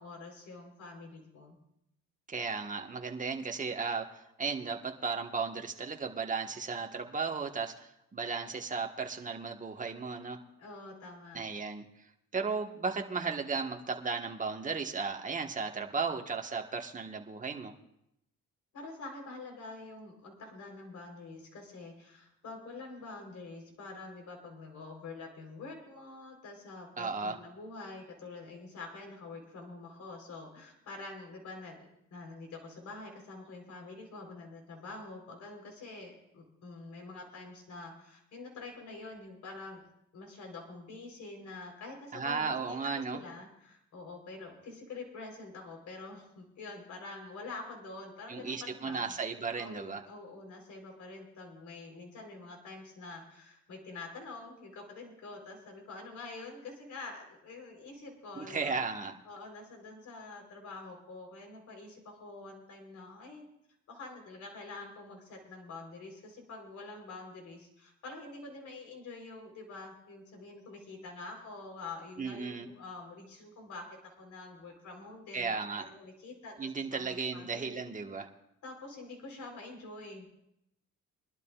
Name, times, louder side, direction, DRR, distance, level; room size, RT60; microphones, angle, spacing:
voice 1, 0.0-1.6 10.6-11.4 18.7-39.8 40.1-49.2 49.6-58.8 59.3-63.4 63.9-77.8 78.6-80.3, left 3 dB, 70° left, 2 dB, 3.9 m, -46 dB
voice 2, 2.3-10.4 11.3-11.8 12.3-17.7 27.0-27.4 42.1-43.2 48.3-50.0 58.4-59.1 72.2-72.7 75.3-75.9 76.6-78.3, right 4 dB, 25° right, 3 dB, 1.4 m, -35 dB
23.5 x 12.0 x 2.4 m, 0.79 s
cardioid pair, 90°, 30 cm